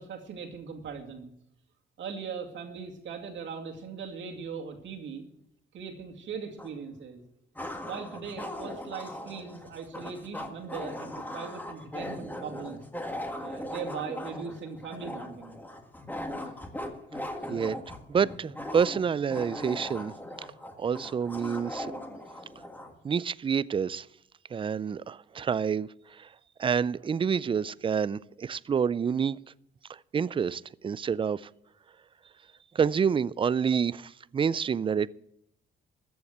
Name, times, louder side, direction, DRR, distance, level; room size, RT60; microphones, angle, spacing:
voice 1, 0.0-1.3 2.0-5.2 5.7-7.2 7.8-12.8 13.4-15.6, right 5 dB, 70° right, 2.4 m, -39 dB
sound 1, 6.6-6.7 7.6-22.9, left 1 dB, 10° left, 1.7 m, -39 dB
voice 2, 18.1-20.1 20.8-21.9 23.0-24.1 24.5-26.3 26.6-29.4 29.9-31.5 32.7-35.1, right 6 dB, 25° right, 0.4 m, -28 dB
14.0 x 7.1 x 8.0 m
cardioid pair, 90°, 20 cm